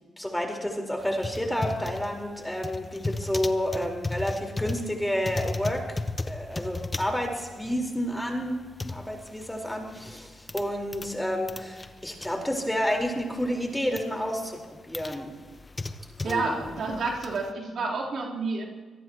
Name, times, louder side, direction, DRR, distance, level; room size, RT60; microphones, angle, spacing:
voice 1, 0.2-6.0 6.2-15.3 16.2-16.7, equal, 5° left, 1 dB, 4.5 m, -30 dB
sound 1, 1.0-11.2 11.4-13.1 13.4-14.1 14.5-17.5, left 2 dB, 30° left, 1.2 m, -36 dB
voice 2, 16.2-18.7, right 3 dB, 65° right, -4 dB, 3.9 m, -29 dB
25.5 x 18.5 x 3.1 m, 1.3 s
supercardioid pair, 50°, 0 cm